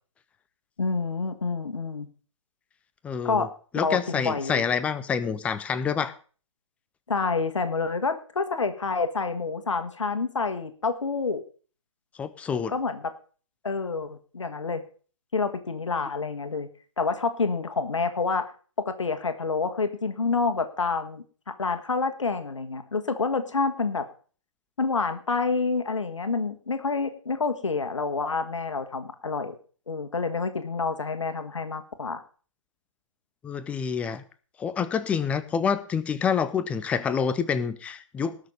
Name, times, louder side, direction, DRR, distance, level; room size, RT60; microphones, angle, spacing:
voice 1, 0.8-2.1 3.2-3.5 3.7-4.6 7.1-11.4 12.7-13.1 13.6-14.8 15.3-16.7 17.0-18.5 18.8-21.2 21.6-24.0 24.8-29.6 29.9-32.2, left 4 dB, 65° left, 8 dB, 1.6 m, -28 dB
voice 2, 3.0-3.5 3.7-6.1 12.2-12.7 33.4-34.2 34.6-38.4, left 6 dB, 10° left, 13 dB, 0.6 m, -27 dB
19.0 x 6.6 x 5.4 m, 0.40 s
figure-of-eight pair, 130°, 17 cm